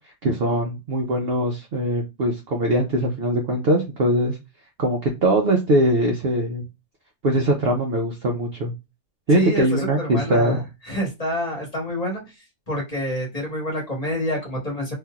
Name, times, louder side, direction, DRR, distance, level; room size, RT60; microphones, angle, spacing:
voice 1, 0.2-4.4 4.8-6.6 7.2-8.7 9.3-10.6, right 1 dB, 55° right, 1 dB, 0.7 m, -21 dB
voice 2, 9.3-12.4 12.7-14.9, equal, 25° left, -2 dB, 1.2 m, -27 dB
3.1 x 2.7 x 2.3 m, 0.24 s
omnidirectional pair, 1.6 m